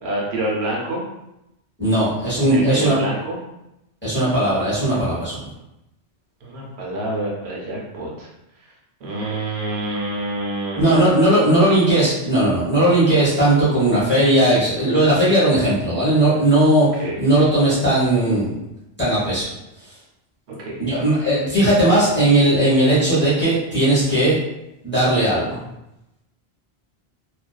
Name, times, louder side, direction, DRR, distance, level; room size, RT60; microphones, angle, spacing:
voice 1, 0.0-1.0 2.4-3.4 6.4-8.3 9.0-11.0 17.0-17.2 20.5-20.8, right 1 dB, 85° right, -4 dB, 1.0 m, -27 dB
voice 2, 1.8-3.0 4.0-5.4 10.8-16.9 17.2-18.5 19.0-19.4 20.8-24.4 24.8-25.6, right 1 dB, 10° left, -10 dB, 0.8 m, -17 dB
2.4 x 2.2 x 2.2 m, 0.88 s
omnidirectional pair, 1.1 m